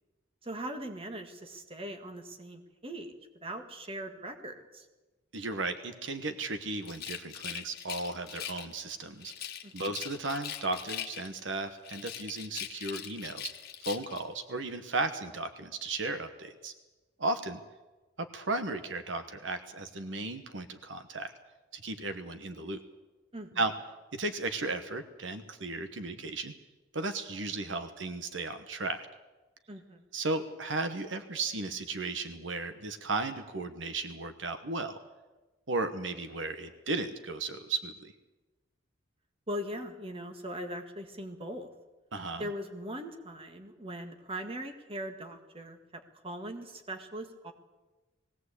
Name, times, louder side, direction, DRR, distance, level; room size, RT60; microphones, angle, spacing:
voice 1, 0.4-4.9 9.6-9.9 23.3-23.6 29.7-30.0 39.5-41.7 42.4-47.5, equal, 30° right, 6 dB, 1.9 m, -40 dB
voice 2, 5.3-9.3 9.7-13.5 13.8-16.7 17.2-17.6 18.2-21.3 21.7-22.8 23.6-23.7 24.1-26.5 26.9-29.1 30.1-35.0 35.7-38.1 42.1-42.5, right 3 dB, 75° right, 9 dB, 1.2 m, -35 dB
Rattle, 6.8-8.8 9.2-11.5 11.8-14.3, left 10 dB, 55° left, 1.4 m, -41 dB
20.0 x 17.5 x 8.3 m, 1.2 s
head